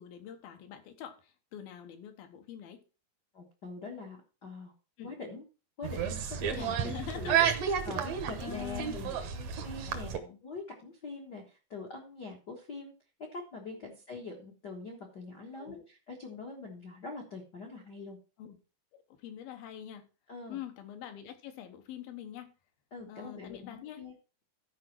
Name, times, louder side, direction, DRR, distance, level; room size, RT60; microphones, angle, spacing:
voice 1, 0.0-2.8 5.0-5.1 6.5-7.4 8.4-9.2 9.9-10.4 13.7-14.0 15.6-15.9 18.4-18.6 18.9-20.1 20.5-22.5 23.1-24.0, left 10 dB, 75° left, 6 dB, 2.9 m, -45 dB
voice 2, 3.3-4.7 5.0-5.4 5.8-7.4 7.8-10.1 10.4-12.9 13.3-18.2 20.3-20.6 22.9-24.1, left 3 dB, 55° left, 0 dB, 1.1 m, -44 dB
sound 1, 5.8-10.2, right 8 dB, 70° right, 1.6 m, -31 dB
13.5 x 5.0 x 4.6 m, 0.33 s
omnidirectional pair, 4.4 m